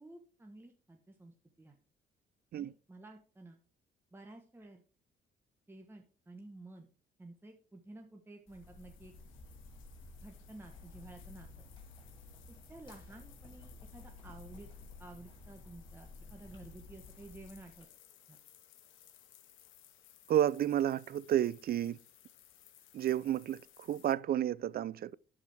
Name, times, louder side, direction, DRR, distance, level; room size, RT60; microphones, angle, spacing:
voice 1, 0.0-1.8 2.6-3.6 4.1-4.8 5.7-6.9 7.2-9.1 10.2-11.7 12.5-14.7 15.0-17.9 18.3-18.4, right 2 dB, 10° right, 1.1 m, -53 dB
sound 1, 8.5-24.1, left 11 dB, 90° left, 1.1 m, -62 dB
sound 2, 8.5-17.8, left 3 dB, 25° left, 4.5 m, -53 dB
voice 2, 20.3-22.0 22.9-25.1, right 11 dB, 50° right, 0.4 m, -31 dB
12.0 x 4.9 x 3.4 m
cardioid pair, 90°, 20 cm